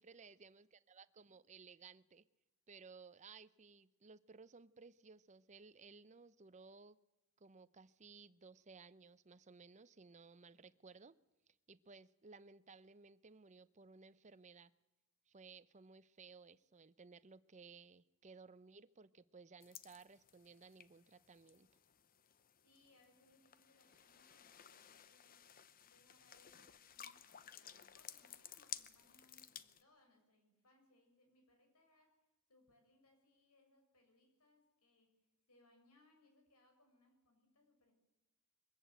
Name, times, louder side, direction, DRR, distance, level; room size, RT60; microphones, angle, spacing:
voice 1, 0.0-2.2 2.7-7.0 7.4-11.2 11.7-14.7 15.3-21.7, right 4 dB, 30° right, 15 dB, 0.7 m, -59 dB
sound 1, 19.6-29.8, left 10 dB, 40° left, 0.8 m, -56 dB
voice 2, 22.6-25.5 25.8-35.1 35.5-37.9, left 2 dB, 90° left, 4 dB, 6.1 m, -72 dB
22.5 x 15.0 x 9.1 m, 1.0 s
head